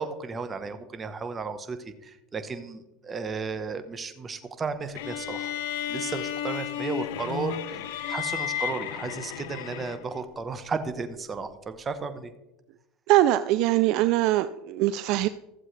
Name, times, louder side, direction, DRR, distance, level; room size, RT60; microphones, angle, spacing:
voice 1, 0.0-5.5 5.9-12.3, right 4 dB, 25° right, 9 dB, 1.1 m, -34 dB
sound 1, 5.0-10.2, left 10 dB, 75° left, 0.7 m, -33 dB
voice 2, 13.1-15.3, right 15 dB, 60° right, 12 dB, 0.4 m, -22 dB
15.0 x 7.5 x 3.3 m, 0.97 s
supercardioid pair, 105°, 0 cm